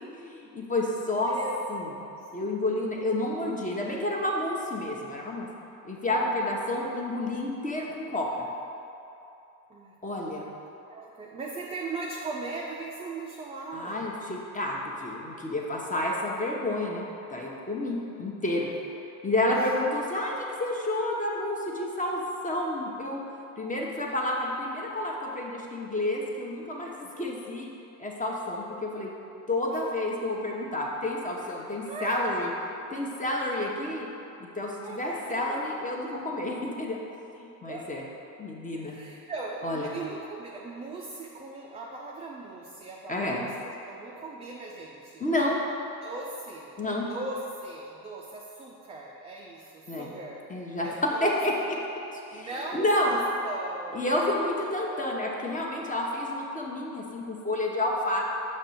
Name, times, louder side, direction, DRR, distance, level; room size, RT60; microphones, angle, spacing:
voice 1, 0.0-1.3 1.7-1.9 2.3-5.5 5.8-8.3 10.0-10.5 13.7-18.7 19.2-23.2 23.6-27.7 28.0-29.1 29.5-32.5 32.9-34.1 34.5-37.0 37.4-38.0 38.4-39.0 39.6-39.9 43.1-43.4 45.2-45.6 46.8-47.1 49.9-50.1 50.5-50.9 51.2-51.5 52.1-53.2 53.9-58.2, left 1 dB, 15° left, -2 dB, 1.0 m, -30 dB
voice 2, 1.1-2.3 9.7-10.6 10.9-14.1 18.6-18.7 29.7-29.8 31.4-32.5 34.7-35.6 37.7-37.9 38.7-45.2 45.6-45.7 46.0-51.4 52.3-55.1, right 3 dB, 15° right, -3 dB, 0.4 m, -39 dB
6.4 x 3.2 x 5.8 m, 2.8 s
hypercardioid pair, 60°, 48 cm